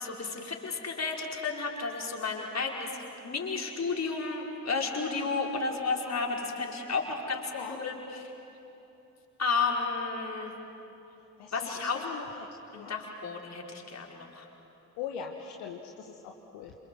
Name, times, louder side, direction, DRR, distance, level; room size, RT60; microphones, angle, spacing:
voice 1, 0.0-2.9 3.2-7.5 7.8-8.3 9.4-10.5 11.5-12.0 12.7-14.5, left 4 dB, 35° left, -1 dB, 5.0 m, -32 dB
voice 2, 11.4-12.5 12.7-12.9 15.0-16.8, left 7 dB, 65° left, 2 dB, 1.7 m, -41 dB
28.0 x 26.5 x 7.8 m, 2.9 s
figure-of-eight pair, 45°, 44 cm